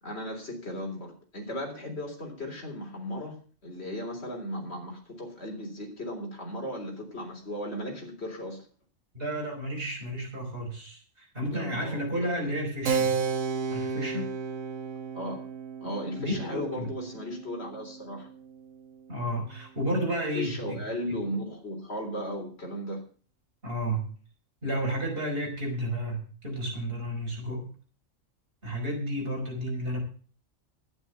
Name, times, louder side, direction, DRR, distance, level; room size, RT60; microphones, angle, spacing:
voice 1, 0.0-3.4 3.6-8.7 11.5-12.2 15.1-15.5 15.8-18.3 20.3-23.0, equal, 50° left, 1 dB, 3.9 m, -36 dB
voice 2, 9.1-13.1 13.7-14.3 16.2-16.9 19.1-20.8 23.6-24.0 24.6-27.7 28.6-30.0, equal, 45° right, -1 dB, 5.3 m, -32 dB
Keyboard (musical), 12.9-19.0, right 5 dB, 90° right, 1.6 m, -33 dB
11.5 x 9.5 x 6.9 m, 0.42 s
omnidirectional pair, 1.4 m